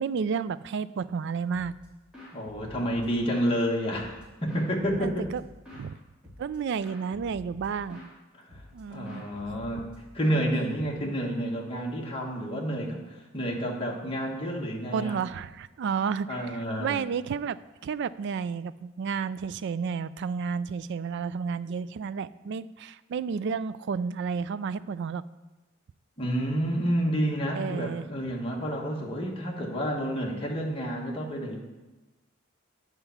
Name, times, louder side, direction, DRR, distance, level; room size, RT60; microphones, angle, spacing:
voice 1, 0.0-1.7 5.0-5.4 5.7-6.0 6.4-8.1 8.7-9.2 14.9-17.6 17.8-25.2 27.5-28.0, right 6 dB, 60° right, 16 dB, 0.3 m, -31 dB
sound 1, 1.5-1.8 2.1-3.5 3.9-5.9 6.2-6.6 6.8-8.1 8.5-8.8 9.0-11.1, left 1 dB, 5° right, 2.6 m, -48 dB
voice 2, 2.3-5.3 8.5-8.6 8.9-9.9 10.1-15.2 16.3-17.0 26.2-31.6, equal, 25° left, -2 dB, 1.4 m, -29 dB
9.8 x 4.6 x 7.0 m, 1.1 s
head